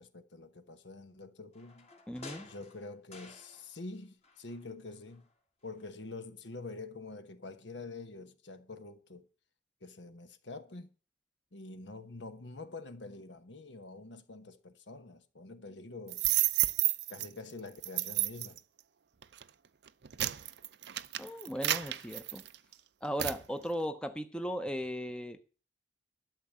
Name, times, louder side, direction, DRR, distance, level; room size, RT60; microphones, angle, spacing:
voice 1, 0.0-1.9 2.4-5.3 5.6-9.3 9.8-10.9 11.5-16.2 17.1-18.6, left 3 dB, 70° left, 1.2 m, -46 dB
sound 1, 1.5-4.0 4.2-5.3 5.7-5.8, left 3 dB, 35° left, 1.7 m, -53 dB
voice 2, 2.1-2.5 21.2-22.4 23.0-25.4, equal, 5° left, 0.7 m, -37 dB
sound 2, 16.1-17.3 17.8-18.6 19.2-19.4 19.9-22.7 23.2-23.4, right 15 dB, 60° right, 0.5 m, -30 dB
12.5 x 6.8 x 7.4 m
head